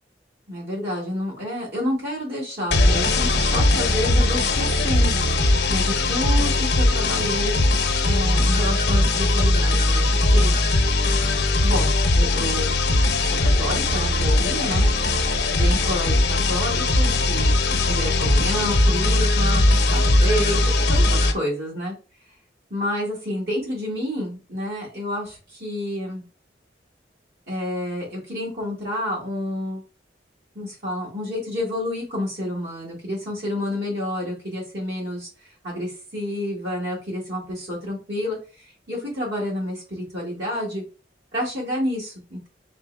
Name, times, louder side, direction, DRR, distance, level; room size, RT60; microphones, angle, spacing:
voice 1, 0.5-5.2 5.7-7.6 8.0-10.6 11.6-12.8 13.2-14.9 15.4-17.6 17.9-19.6 19.9-21.9 22.7-26.2 27.5-29.8 30.5-40.8 41.3-42.5, left 1 dB, 60° right, -5 dB, 1.9 m, -29 dB
sound 1, 2.7-21.3, left 2 dB, 65° left, 0.7 m, -19 dB
4.3 x 4.1 x 2.3 m, 0.35 s
head